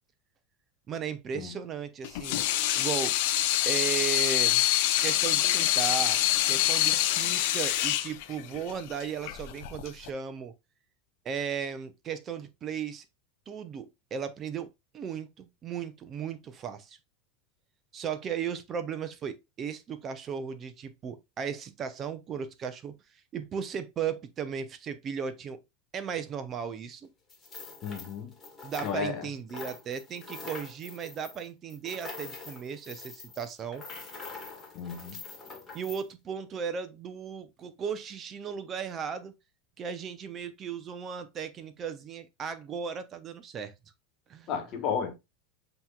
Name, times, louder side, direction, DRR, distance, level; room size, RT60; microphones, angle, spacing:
voice 1, 0.9-2.4 2.7-3.1 3.7-4.6 5.0-6.2 6.5-10.5 11.2-13.0 13.5-14.7 14.9-17.0 17.9-23.0 23.3-25.6 25.9-27.1 28.6-33.8 35.7-39.3 39.8-43.7 44.3-44.5, right 7 dB, 30° right, 0.6 m, -36 dB
Water tap faucet / Sink (filling or washing), 2.0-10.1, left 14 dB, 65° left, 0.5 m, -26 dB
sound 1, 27.3-29.2 29.5-36.0, left 4 dB, 20° left, 1.6 m, -44 dB
voice 2, 27.8-28.3 28.8-29.3 34.7-35.2 44.5-45.1, left 7 dB, 45° left, 1.3 m, -33 dB
7.7 x 2.9 x 2.3 m
supercardioid pair, 135°, 0 cm